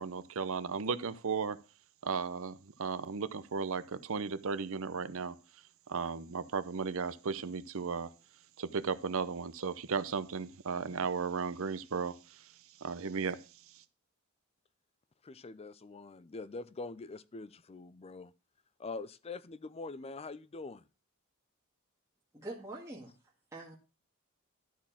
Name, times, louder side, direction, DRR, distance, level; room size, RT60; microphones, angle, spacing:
voice 1, 0.0-1.6 2.0-5.4 5.9-8.1 8.6-12.5 12.8-13.4 13.7-13.8, right 5 dB, 70° right, 0.7 m, -35 dB
voice 2, 15.2-18.3 18.8-20.8, left 3 dB, 30° left, 0.4 m, -44 dB
voice 3, 22.3-23.1 23.5-23.8, right 2 dB, 15° right, 1.7 m, -44 dB
12.0 x 4.3 x 7.1 m
head